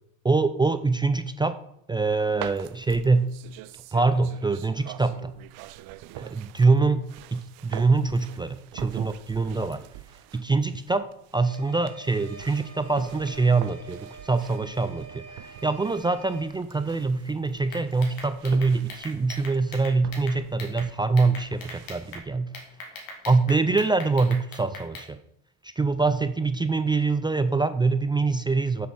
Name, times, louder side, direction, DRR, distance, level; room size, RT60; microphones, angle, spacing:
voice 1, 0.2-1.6 1.9-3.3 3.9-5.3 6.2-7.0 7.3-9.8 10.3-22.5 23.3-25.2 25.8-28.9, right 3 dB, 15° right, 11 dB, 0.3 m, -24 dB
sound 1, 2.4-22.2, right 15 dB, 85° right, 0.5 m, -44 dB
sound 2, 11.4-16.5, right 4 dB, 45° right, 1.7 m, -47 dB
sound 3, 17.7-20.9 21.2-22.2 22.5-25.1, left 2 dB, 75° left, 2.8 m, -41 dB
6.8 x 6.2 x 6.3 m, 0.80 s
cardioid pair, 115°, 35 cm